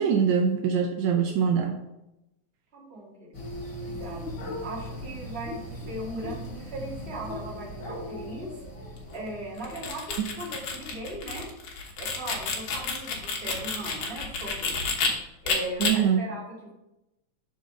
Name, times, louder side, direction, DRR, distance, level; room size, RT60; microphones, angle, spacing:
voice 1, 0.0-1.8 15.8-16.2, right 7 dB, 80° right, 3 dB, 1.8 m, -23 dB
voice 2, 2.7-3.4 3.8-8.6 9.1-11.5 12.0-14.9 15.4-16.7, right 1 dB, 25° right, -5 dB, 1.8 m, -38 dB
sound 1, 3.3-11.0, equal, 40° left, 1.1 m, -39 dB
sound 2, 9.6-15.1 15.5-15.9, left 5 dB, 70° left, 2.4 m, -30 dB
6.4 x 4.1 x 4.8 m, 0.92 s
omnidirectional pair, 3.4 m